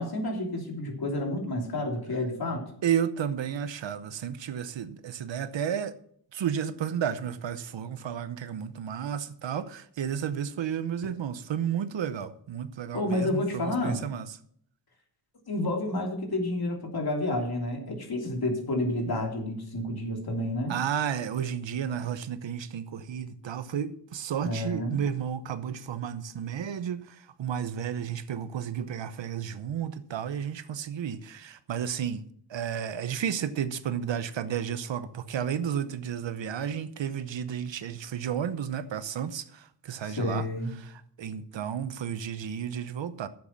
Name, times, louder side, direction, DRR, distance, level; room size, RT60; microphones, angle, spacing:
voice 1, 0.0-2.6 12.9-14.0 15.5-20.8 24.4-25.0 40.0-40.7, left 1 dB, 55° left, 3.0 m, -30 dB
voice 2, 2.8-5.9 6.3-14.3 20.7-32.2 32.5-40.4 41.2-43.3, right 8 dB, 80° right, 0.9 m, -32 dB
11.0 x 7.7 x 5.8 m
wide cardioid pair, 95°, 43 cm